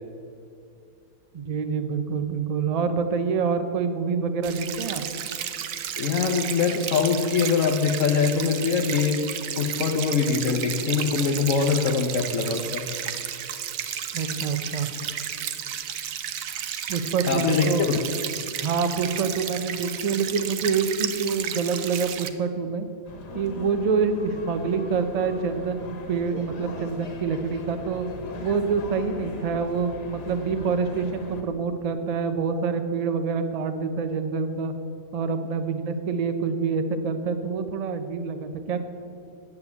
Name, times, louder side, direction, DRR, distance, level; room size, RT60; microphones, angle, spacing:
voice 1, 1.3-5.0 14.1-14.9 16.9-17.9 18.6-22.9 23.3-28.1 28.4-34.7 35.1-38.9, right 5 dB, 85° right, 9 dB, 0.3 m, -26 dB
sound 1, 4.4-22.3, right 9 dB, 65° right, 1.0 m, -33 dB
voice 2, 6.0-9.2 9.6-12.8 17.3-17.9, left 5 dB, 60° left, 2 dB, 1.1 m, -23 dB
sound 2, 23.0-31.4, left 3 dB, 80° left, 1.8 m, -40 dB
9.5 x 7.0 x 8.2 m, 2.6 s
omnidirectional pair, 1.7 m